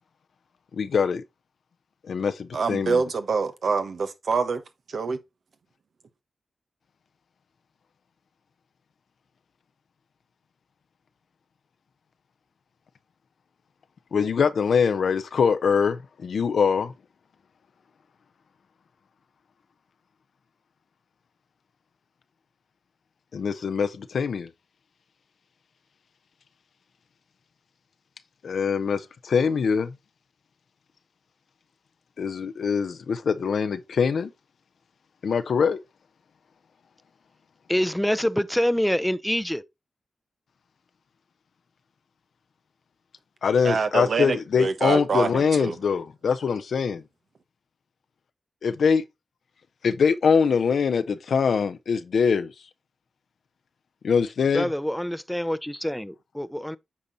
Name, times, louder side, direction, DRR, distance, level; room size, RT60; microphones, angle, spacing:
voice 1, 0.7-1.2 2.1-3.0 14.1-16.9 23.3-24.5 28.4-29.9 32.2-34.3 35.2-35.8 43.4-47.0 48.6-49.0 49.8-52.5 54.0-54.7, left 6 dB, 80° left, 0.6 m, -23 dB
voice 2, 2.5-4.6 4.9-5.2 43.6-45.8, right 4 dB, 75° right, 1.1 m, -25 dB
voice 3, 37.7-39.6 54.5-56.8, equal, 5° left, 0.6 m, -26 dB
8.6 x 4.3 x 4.0 m
cardioid pair, 45°, 0 cm